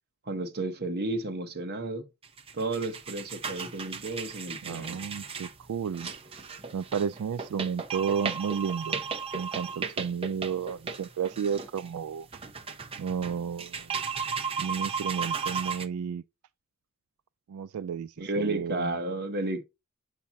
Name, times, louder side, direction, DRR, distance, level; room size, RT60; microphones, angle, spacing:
voice 1, 0.3-2.1 2.5-5.0 18.2-19.6, right 2 dB, 45° right, 1.1 m, -32 dB
sound 1, 2.2-15.9, right 5 dB, 25° right, 0.7 m, -35 dB
voice 2, 4.6-6.1 6.7-9.0 9.3-12.3 13.0-14.1 14.6-16.2 17.5-19.0, right 7 dB, 80° right, 0.3 m, -32 dB
7.3 x 5.8 x 2.9 m
head